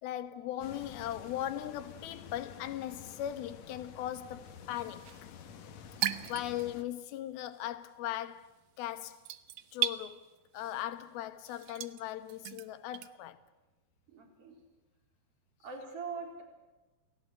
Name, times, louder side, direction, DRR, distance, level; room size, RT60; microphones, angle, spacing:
voice 1, 0.0-5.1 6.3-9.2 9.7-10.2 10.5-13.4, left 12 dB, 80° left, 3.0 m, -39 dB
sound 1, 0.6-6.8, left 7 dB, 60° left, 2.1 m, -50 dB
sound 2, 4.5-7.1 7.4-13.1, right 12 dB, 70° right, 2.1 m, -38 dB
voice 2, 6.1-6.4 14.1-14.6 15.6-16.4, right 5 dB, 40° right, 4.9 m, -43 dB
28.5 x 17.5 x 8.1 m
omnidirectional pair, 4.3 m